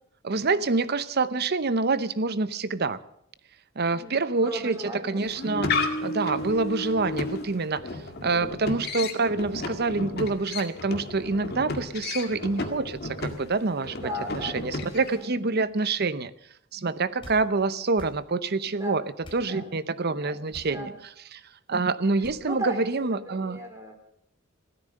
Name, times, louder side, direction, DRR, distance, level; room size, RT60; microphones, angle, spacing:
voice 1, 0.2-3.0 3.8-4.8 5.0-5.8 6.0-14.1 14.3-16.3 16.7-19.0 19.3-20.9 21.3-21.4 21.7-23.6, right 3 dB, 50° right, 0.8 m, -26 dB
voice 2, 3.9-5.4 8.2-8.5 13.9-15.8 18.7-19.0 19.4-19.7 20.1-21.0 22.4-23.9, right 1 dB, 15° right, 4.0 m, -38 dB
sound 1, 5.2-15.2, left 2 dB, 50° left, 2.0 m, -33 dB
sound 2, 17.2-17.4 17.9-18.2 19.2-19.5 20.5-20.8 22.2-22.4, equal, 25° left, 3.5 m, -44 dB
15.5 x 13.5 x 6.6 m
head